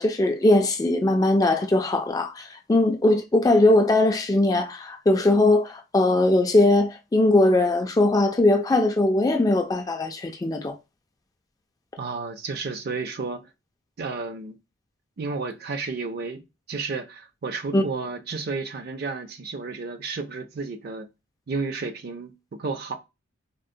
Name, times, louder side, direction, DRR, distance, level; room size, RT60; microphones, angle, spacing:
voice 1, 0.0-10.8 17.7-17.8, left 2 dB, 20° left, 0.3 m, -20 dB
voice 2, 12.0-13.5 14.0-14.6 15.2-21.1 21.5-22.3 22.6-22.9, right 4 dB, 50° right, 0.4 m, -32 dB
3.8 x 2.0 x 2.5 m
head